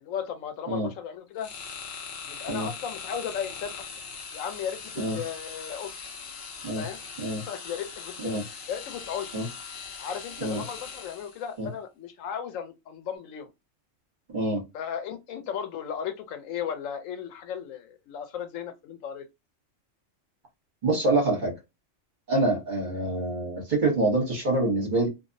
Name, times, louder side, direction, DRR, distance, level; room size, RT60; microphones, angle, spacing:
voice 1, 0.0-1.5 2.2-3.7 4.3-5.9 6.7-7.0 7.5-8.4 8.7-9.3 10.0-13.5 14.7-19.3, left 8 dB, 90° left, 1.0 m, -35 dB
sound 1, 1.4-11.5, left 5 dB, 55° left, 0.8 m, -41 dB
voice 2, 20.8-21.5 22.3-25.1, right 2 dB, 40° right, 1.0 m, -26 dB
2.5 x 2.0 x 2.5 m
omnidirectional pair, 1.3 m